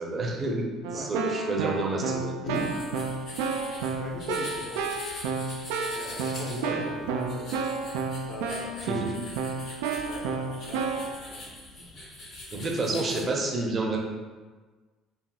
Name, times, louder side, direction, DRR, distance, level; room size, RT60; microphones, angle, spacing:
voice 1, 0.0-2.3 6.5-6.8 8.8-9.2 12.5-14.0, right 2 dB, 40° right, 0 dB, 0.7 m, -29 dB
Keyboard (musical), 0.8-11.2, right 4 dB, 75° right, 0.3 m, -31 dB
voice 2, 2.4-5.0 5.9-7.0 7.3-9.0 9.5-12.4, left 2 dB, 50° left, -2 dB, 0.9 m, -41 dB
sound 1, 2.5-13.2, left 1 dB, 65° left, 1.4 m, -43 dB
4.7 x 2.7 x 2.3 m, 1.4 s
hypercardioid pair, 55°, 0 cm